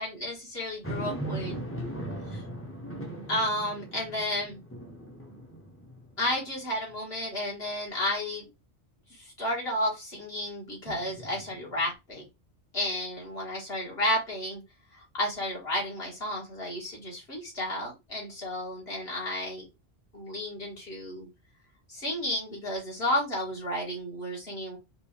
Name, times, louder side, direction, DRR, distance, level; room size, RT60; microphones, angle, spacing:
voice 1, 0.0-1.6 2.3-2.4 3.3-4.6 6.2-8.5 9.1-12.2 12.7-14.6 14.9-19.7 20.1-21.3 21.9-24.8, left 1 dB, 65° left, -3 dB, 2.4 m, -32 dB
sound 1, 0.8-6.4 6.9-7.0 10.9-11.9, right 1 dB, 15° left, 0.8 m, -39 dB
5.4 x 2.6 x 3.3 m, 0.24 s
omnidirectional pair, 1.1 m